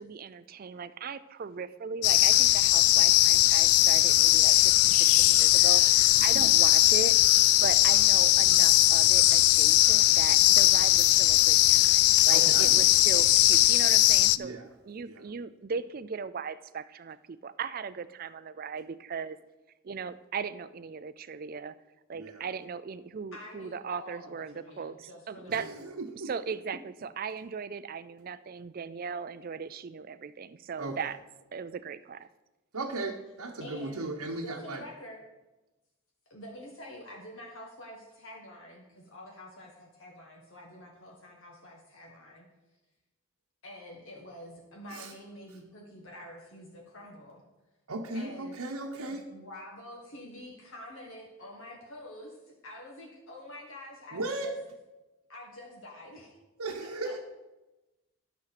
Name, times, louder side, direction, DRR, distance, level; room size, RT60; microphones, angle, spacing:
voice 1, 0.0-7.2 7.6-14.6 14.8-19.4 19.8-21.7 22.1-25.7 26.2-31.2 31.5-32.3, right 5 dB, 40° right, 15 dB, 0.3 m, -38 dB
sound 1, 2.0-14.4, left 16 dB, 80° left, 0.3 m, -20 dB
voice 2, 12.3-12.9 14.4-14.7 15.1-15.2 22.1-22.5 25.5-26.3 30.8-31.0 32.7-34.8 44.9-45.1 47.9-49.3 54.1-54.5 56.6-57.2, right 2 dB, 80° right, -1 dB, 1.0 m, -36 dB
voice 3, 23.3-25.9 33.6-34.0 34.4-35.2 36.3-42.5 43.6-47.4 48.1-48.6 49.1-54.5 55.3-56.4 56.8-57.1, left 1 dB, 60° left, -1 dB, 1.4 m, -47 dB
11.5 x 6.2 x 5.8 m, 1.1 s
head